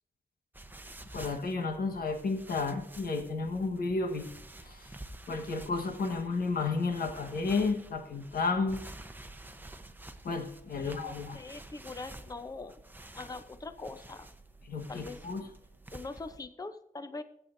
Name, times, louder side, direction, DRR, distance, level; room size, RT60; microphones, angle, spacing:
sound 1, 0.5-16.4, right 2 dB, 15° right, 0.8 m, -50 dB
voice 1, 1.1-4.3 4.6-4.9 5.3-8.8 10.2-11.4 14.7-15.4, left 4 dB, 90° left, 5 dB, 1.3 m, -32 dB
voice 2, 10.8-12.8 13.1-14.3 14.9-15.2 15.9-17.2, left 3 dB, 25° left, 10 dB, 0.7 m, -42 dB
20.0 x 8.6 x 2.6 m, 0.77 s
cardioid pair, 75°, 15 cm